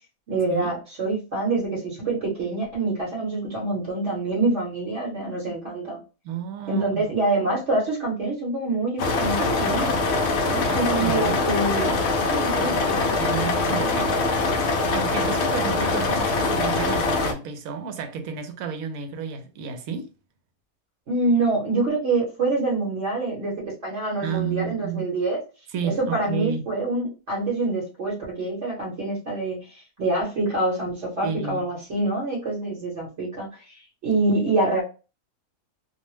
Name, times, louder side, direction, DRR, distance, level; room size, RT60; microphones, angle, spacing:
voice 1, 0.3-6.0 6.7-10.0 10.5-13.0 13.9-14.1 21.1-25.4 25.8-34.8, right 2 dB, 55° right, 1.1 m, -26 dB
voice 2, 6.2-7.0 10.7-11.4 13.2-14.1 14.9-20.1 24.2-25.1 25.7-26.7 31.2-31.6, right 7 dB, 80° right, 1.0 m, -31 dB
sound 1, 9.0-17.3, left 3 dB, 65° left, 0.7 m, -23 dB
2.6 x 2.1 x 3.0 m
omnidirectional pair, 1.5 m